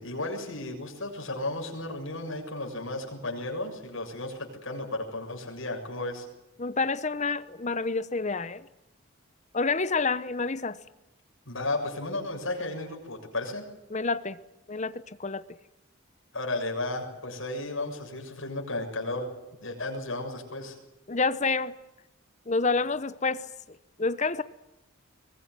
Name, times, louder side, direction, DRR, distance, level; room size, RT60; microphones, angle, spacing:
voice 1, 0.0-6.3 11.5-13.6 16.3-19.3 19.6-20.8, left 2 dB, 70° left, 7.1 m, -34 dB
voice 2, 6.6-8.6 9.5-10.8 13.9-14.4 14.7-15.4 21.1-21.7 22.5-23.4 24.0-24.4, left 4 dB, 35° left, 0.9 m, -28 dB
23.0 x 20.5 x 9.6 m
head